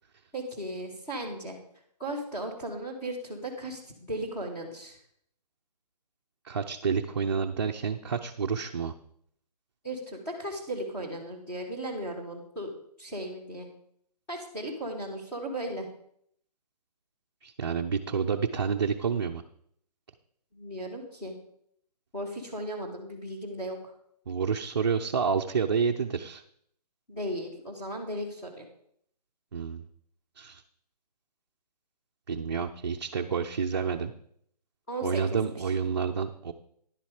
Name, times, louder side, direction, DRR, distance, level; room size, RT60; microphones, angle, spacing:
voice 1, 0.3-1.6 2.0-5.0 9.8-12.7 13.0-13.7 14.3-15.9 20.5-21.3 22.1-23.8 27.1-28.7 34.9-35.4, right 1 dB, 10° left, -3 dB, 1.4 m, -36 dB
voice 2, 6.4-8.9 17.4-19.4 24.3-26.4 29.5-29.8 30.4-30.6 32.3-34.1 35.0-36.5, right 6 dB, 40° right, 2 dB, 0.5 m, -29 dB
10.5 x 7.3 x 4.9 m, 0.66 s
hypercardioid pair, 170°, 21 cm